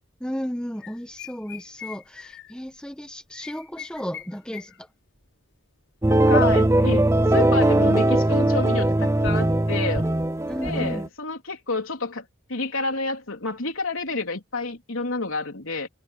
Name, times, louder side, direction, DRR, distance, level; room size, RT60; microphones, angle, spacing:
voice 1, 0.2-4.9 10.5-11.1, equal, 5° left, 1.3 m, -34 dB
sound 1, 0.8-2.8 3.3-4.8 5.1-5.2 6.0-6.1 6.6-6.7, left 9 dB, 60° left, 6.0 m, -42 dB
sound 2, 6.0-11.1, right 1 dB, 15° right, 0.5 m, -20 dB
voice 2, 6.1-7.0 7.3-10.1 10.6-12.2 12.5-15.9, left 3 dB, 80° left, 3.6 m, -29 dB
head